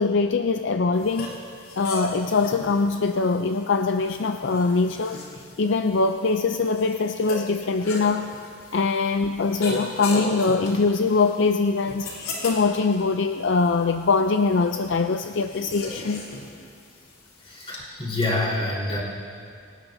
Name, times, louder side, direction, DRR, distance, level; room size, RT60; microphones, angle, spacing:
voice 1, 0.0-1.3 1.8-5.2 5.6-8.3 8.7-12.1 12.4-16.2, left 4 dB, 60° left, 7 dB, 0.4 m, -22 dB
sound 1, 1.0-17.8, left 2 dB, 85° left, 3.6 m, -37 dB
voice 2, 17.4-19.0, left 2 dB, 25° left, -5 dB, 4.1 m, -26 dB
25.5 x 18.5 x 2.7 m, 2.3 s
head